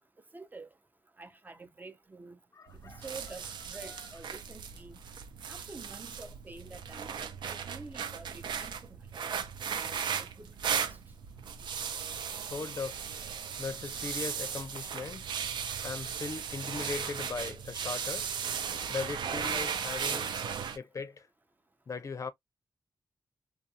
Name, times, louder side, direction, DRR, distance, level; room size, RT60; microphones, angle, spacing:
voice 1, 0.3-0.7 1.2-2.4 2.8-5.0 5.5-7.1 7.4-9.3 9.7-11.0 16.8-16.9, right 3 dB, 25° right, 0.4 m, -48 dB
voice 2, 2.5-3.1 3.8-4.0 11.6-11.7 12.5-13.1 13.6-15.3 15.8-18.3 18.9-20.3 20.8-21.3 21.9-22.3, left 4 dB, 45° left, 0.4 m, -38 dB
sound 1, 2.7-20.8, right 7 dB, 85° right, 0.4 m, -36 dB
2.5 x 2.3 x 2.6 m
cardioid pair, 85°, 8 cm